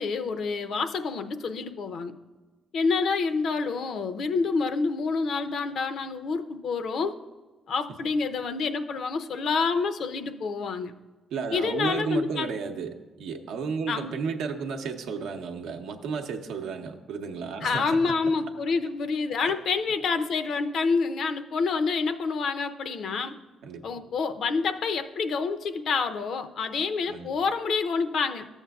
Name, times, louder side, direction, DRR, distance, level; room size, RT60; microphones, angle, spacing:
voice 1, 0.0-2.1 2.7-7.2 7.7-10.9 11.5-12.5 13.9-14.1 17.6-23.3 23.8-28.5, left 4 dB, 65° left, 8 dB, 0.5 m, -28 dB
voice 2, 11.3-18.2 19.4-19.5 23.6-23.8 27.1-27.3, right 5 dB, 85° right, 4 dB, 0.7 m, -33 dB
13.5 x 7.2 x 2.3 m, 1.3 s
cardioid pair, 90°, 0 cm